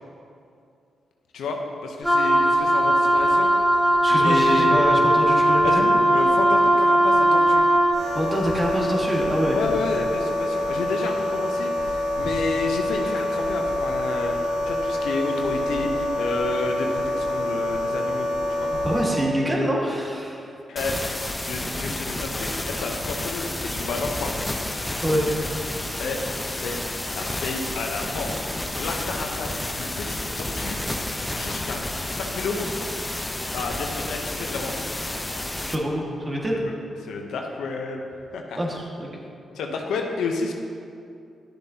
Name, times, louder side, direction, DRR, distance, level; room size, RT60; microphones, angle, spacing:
voice 1, 1.3-4.7 5.6-7.6 9.5-14.4 14.7-18.7 20.7-21.0 21.4-24.3 26.0-28.3 28.8-31.0 31.3-31.8 32.1-32.7 33.5-34.9 36.5-36.7 37.0-38.0 38.3-38.6 39.5-40.5, left 3 dB, 80° left, 2 dB, 0.8 m, -30 dB
Wind instrument woodwind instrument, 2.0-8.0, right 1 dB, ahead, 1.6 m, -18 dB
voice 2, 4.0-5.8 8.1-9.6 18.8-20.5 25.0-25.3 35.6-36.6 38.6-39.1, equal, 25° right, -2 dB, 1.7 m, -25 dB
sound 1, 7.9-19.1, left 1 dB, 55° right, 2.0 m, -26 dB
sound 2, 20.8-35.8, left 1 dB, 20° left, 0.7 m, -30 dB
11.5 x 7.1 x 2.8 m, 2.5 s
supercardioid pair, 50°, 0 cm